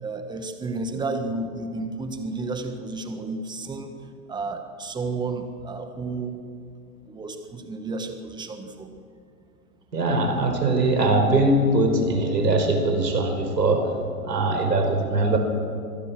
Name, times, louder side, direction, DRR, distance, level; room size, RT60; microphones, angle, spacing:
voice 1, 0.0-3.9 4.3-6.4 7.1-8.9, right 3 dB, 10° right, 6 dB, 1.6 m, -32 dB
voice 2, 9.9-13.9 14.2-15.4, right 2 dB, 90° right, 4 dB, 5.2 m, -21 dB
25.0 x 18.0 x 6.3 m, 2.3 s
hypercardioid pair, 135°, 48 cm